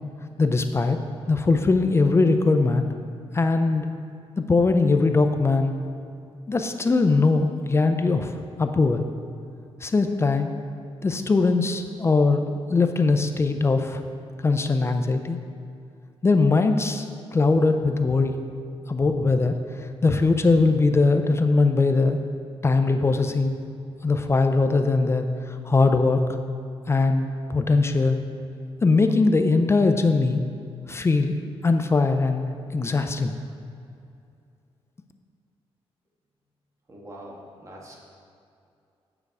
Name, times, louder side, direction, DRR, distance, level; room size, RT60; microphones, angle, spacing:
voice 1, 0.4-1.0 1.3-2.9 3.3-3.9 4.5-5.7 6.5-8.3 8.6-9.0 9.8-10.5 11.0-14.0 14.4-15.4 16.2-17.1 17.3-18.4 18.9-19.6 20.0-22.2 22.6-23.6 24.0-26.2 26.9-28.2 28.8-30.4 30.9-31.3 31.6-32.4 32.7-33.3, left 3 dB, 25° left, 6 dB, 0.5 m, -21 dB
voice 2, 36.9-38.0, right 1 dB, 30° right, -2 dB, 1.7 m, -43 dB
9.0 x 6.7 x 4.8 m, 2.5 s
cardioid pair, 115°, 10 cm